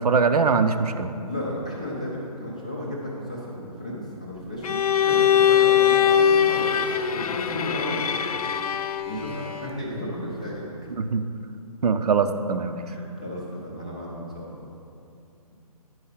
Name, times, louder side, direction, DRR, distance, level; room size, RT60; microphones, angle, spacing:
voice 1, 0.0-1.1 11.0-11.2 11.8-12.8, right 5 dB, 80° right, 9 dB, 0.6 m, -22 dB
voice 2, 1.2-4.8 5.0-6.7 7.1-8.5 9.1-10.7 12.8-14.6, left 1 dB, 10° left, -6 dB, 0.4 m, -34 dB
Bowed string instrument, 4.6-9.2, left 9 dB, 70° left, 0.4 m, -21 dB
sound 1, 6.1-10.7, left 4 dB, 90° left, 0.8 m, -39 dB
9.8 x 4.8 x 5.7 m, 2.7 s
hypercardioid pair, 180°, 20 cm